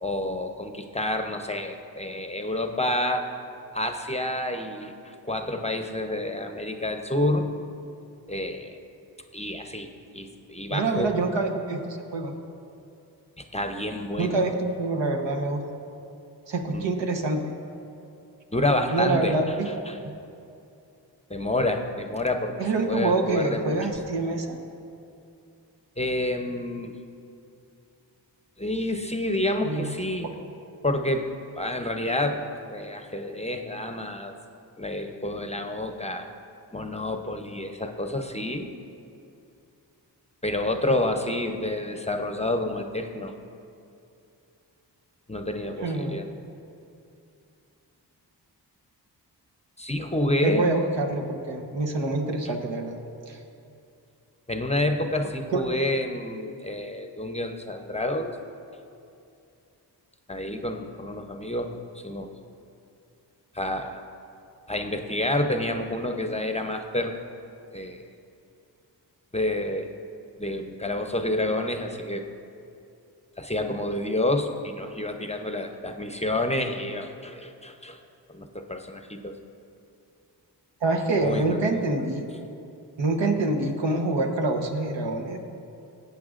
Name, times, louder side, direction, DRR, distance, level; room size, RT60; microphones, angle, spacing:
voice 1, 0.0-3.2 3.7-7.5 8.3-8.7 9.3-11.2 13.4-14.6 16.7-16.9 18.5-19.3 19.9-20.0 21.3-22.5 22.9-23.8 26.0-27.0 28.6-30.3 30.8-34.3 34.8-36.3 36.7-38.7 40.4-43.3 45.3-46.3 49.8-50.7 54.5-58.3 60.3-62.3 63.5-64.0 64.7-67.2 67.7-68.1 69.3-69.9 70.4-72.2 73.4-78.0 78.3-79.4 81.2-81.8, left 1 dB, 15° left, 5 dB, 0.7 m, -29 dB
voice 2, 10.7-12.3 14.2-15.6 16.5-17.4 18.9-20.0 22.6-24.6 29.6-29.9 30.2-30.3 45.8-46.2 50.4-53.0 53.3-53.4 55.5-55.6 80.8-82.3 83.0-85.4, right 2 dB, 70° right, 2 dB, 1.1 m, -26 dB
15.0 x 8.2 x 2.5 m, 2.6 s
cardioid pair, 40°, 44 cm